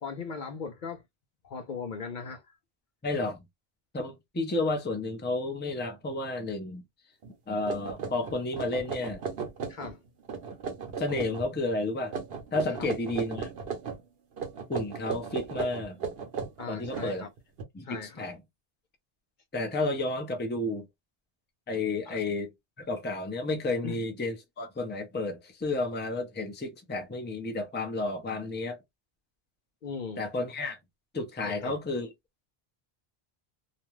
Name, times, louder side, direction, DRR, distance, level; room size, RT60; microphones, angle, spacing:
voice 1, 0.0-1.0 1.4-2.4 9.7-10.0 12.8-12.9 16.6-17.3 17.8-18.3 22.1-22.2 23.8-24.0 29.8-30.2 31.4-31.8, left 5 dB, 55° left, 0.6 m, -38 dB
voice 2, 3.0-3.4 3.9-6.8 7.5-9.2 11.0-12.2 12.5-13.5 14.7-16.0 16.7-17.3 17.7-18.4 19.5-20.9 21.7-22.5 22.8-28.8 30.2-30.8 31.1-32.1, left 2 dB, 15° left, 0.5 m, -31 dB
sound 1, 7.2-7.3 7.7-10.0 10.2-11.5 12.1-14.0 14.4-17.6, right 5 dB, 70° right, 0.9 m, -36 dB
2.5 x 2.2 x 3.1 m
omnidirectional pair, 1.1 m